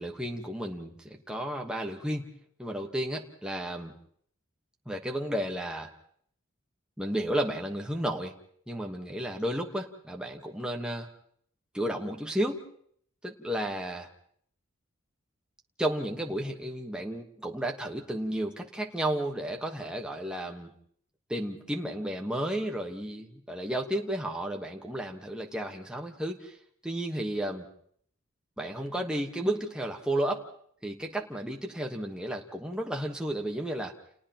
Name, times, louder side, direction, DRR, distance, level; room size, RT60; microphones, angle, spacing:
voice 1, 0.0-2.3 2.6-3.9 4.9-5.9 7.0-8.3 8.7-11.1 11.7-12.6 13.2-14.1 15.8-20.7 21.3-26.6 26.8-27.7 28.6-30.4 30.8-33.9, right 1 dB, 5° right, 1 dB, 1.2 m, -32 dB
30.0 x 29.5 x 2.9 m, 0.63 s
head